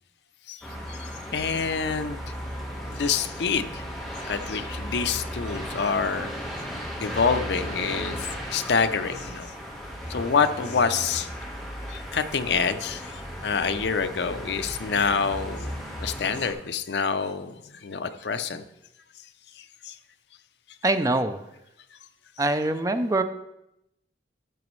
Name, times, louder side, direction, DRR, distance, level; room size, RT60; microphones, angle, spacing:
voice 1, 0.5-2.3 2.9-3.8 4.2-6.3 7.0-9.5 10.1-11.3 11.9-13.1 13.4-18.6 19.6-20.0, left 5 dB, 70° left, 10 dB, 0.5 m, -27 dB
sound 1, 0.6-16.5, equal, ahead, 1.3 m, -36 dB
voice 2, 20.8-21.4 22.4-23.2, right 2 dB, 20° right, 9 dB, 0.4 m, -23 dB
12.5 x 6.0 x 3.1 m, 0.85 s
head